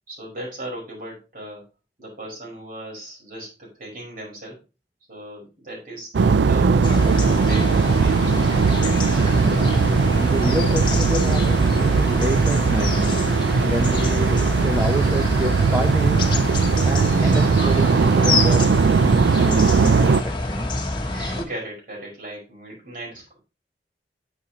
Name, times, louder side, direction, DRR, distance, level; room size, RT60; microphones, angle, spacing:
voice 1, 0.1-1.6 2.0-4.6 5.1-6.9 7.4-8.9 21.1-23.4, right 1 dB, 50° right, 5.0 m, -37 dB
sound 1, 6.1-20.2, right 5 dB, 80° right, 0.4 m, -19 dB
sound 2, 6.4-19.0, equal, 35° right, 4.2 m, -46 dB
sound 3, 6.8-21.4, left 2 dB, 25° left, 1.4 m, -27 dB
voice 2, 9.4-16.3 16.8-20.8, equal, 15° right, 0.8 m, -28 dB
9.3 x 8.2 x 2.9 m
head